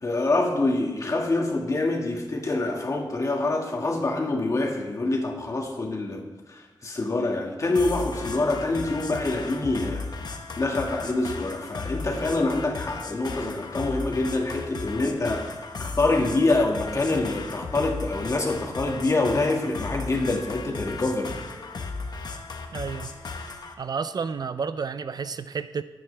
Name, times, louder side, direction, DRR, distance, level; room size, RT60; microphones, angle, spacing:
voice 1, 0.0-10.1 10.6-15.5 15.8-21.3, left 2 dB, 40° left, 1 dB, 2.0 m, -26 dB
sound 1, 7.7-23.7, left 3 dB, 55° left, 1.1 m, -36 dB
voice 2, 22.7-23.1 23.8-25.8, right 5 dB, 55° right, 12 dB, 0.5 m, -31 dB
20.0 x 9.2 x 3.4 m, 1.2 s
wide cardioid pair, 140°, 8 cm